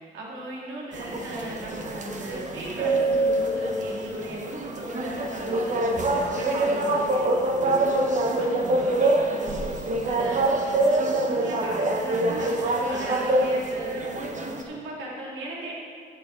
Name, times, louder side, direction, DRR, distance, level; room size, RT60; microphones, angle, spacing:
voice 1, 0.0-15.8, right 1 dB, 90° right, -3 dB, 2.4 m, -37 dB
sound 1, 0.9-14.6, right 2 dB, 40° right, 1.2 m, -25 dB
13.5 x 6.9 x 3.9 m, 2.5 s
cardioid pair, 90°, 20 cm